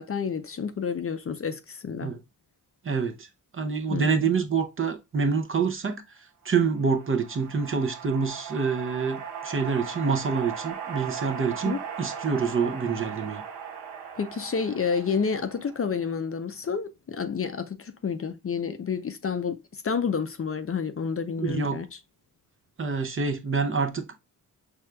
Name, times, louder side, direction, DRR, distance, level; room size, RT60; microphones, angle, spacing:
voice 1, 0.0-2.1 3.9-4.2 11.6-11.8 14.2-19.6 19.8-21.9, left 6 dB, 35° left, 0.5 m, -29 dB
voice 2, 2.8-3.3 3.5-6.2 6.4-13.4 21.4-21.8 22.8-24.1, right 5 dB, 35° right, 0.5 m, -27 dB
sound 1, 6.6-16.1, right 7 dB, 90° right, 0.9 m, -38 dB
6.1 x 3.3 x 2.2 m
wide cardioid pair, 140°, 38 cm